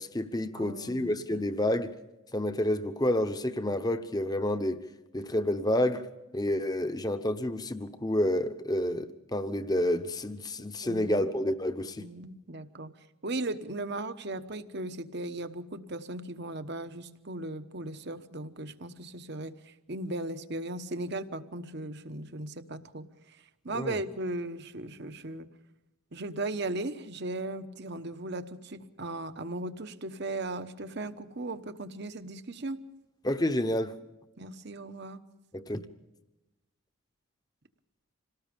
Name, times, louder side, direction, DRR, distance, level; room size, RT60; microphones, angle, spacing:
voice 1, 0.0-1.9 2.3-4.8 5.1-6.1 6.3-12.1 23.7-24.0 33.2-34.0 35.5-35.8, left 1 dB, 20° left, 0.9 m, -29 dB
voice 2, 0.5-1.4 10.6-11.2 12.0-12.9 13.2-23.4 23.6-25.5 26.1-32.8 34.4-35.2, right 2 dB, 50° right, 1.1 m, -37 dB
27.0 x 18.5 x 5.3 m
head